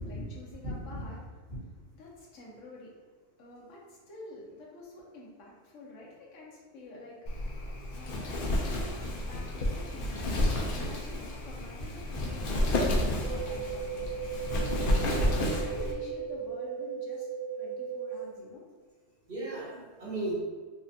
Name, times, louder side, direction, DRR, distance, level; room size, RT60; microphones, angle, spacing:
voice 1, 0.0-3.0 3.4-14.1 14.8-17.3 17.6-18.6, left 2 dB, 75° left, -3 dB, 1.2 m, -48 dB
voice 2, 0.6-1.1 1.5-1.6 19.3-20.4, right 1 dB, 50° right, -8 dB, 1.4 m, -36 dB
Wind, 7.3-15.9, left 1 dB, 55° left, 0.6 m, -31 dB
sound 1, 13.2-18.2, right 6 dB, 75° right, 1.1 m, -37 dB
4.4 x 2.4 x 2.7 m, 1.5 s
omnidirectional pair, 1.3 m